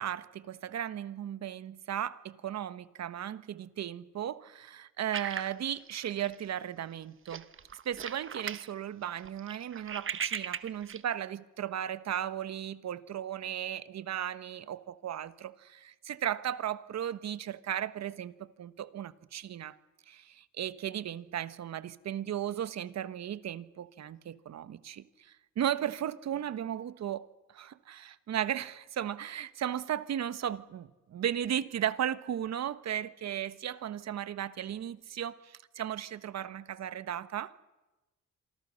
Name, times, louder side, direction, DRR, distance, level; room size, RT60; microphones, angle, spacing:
voice 1, 0.0-7.4 7.8-19.8 20.1-37.5, right 10 dB, 60° right, 1.3 m, -36 dB
sound 1, 5.1-6.5 6.8-7.0 7.3-8.7 9.0-11.0, right 7 dB, 45° right, 1.3 m, -38 dB
27.0 x 24.5 x 6.5 m
cardioid pair, 90°, 30 cm